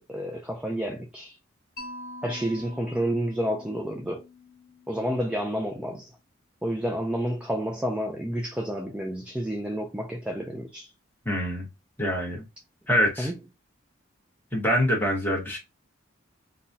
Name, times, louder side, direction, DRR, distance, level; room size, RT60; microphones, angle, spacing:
voice 1, 0.1-1.4 2.2-4.2 4.9-6.1 6.6-10.9 13.2-13.3, equal, 5° right, 0.3 m, -30 dB
Mallet percussion, 1.8-5.8, left 2 dB, 45° left, 1.4 m, -45 dB
voice 2, 11.2-11.7 12.0-12.4 12.9-13.3 14.5-15.6, equal, 10° left, 1.1 m, -25 dB
3.9 x 2.2 x 2.6 m
head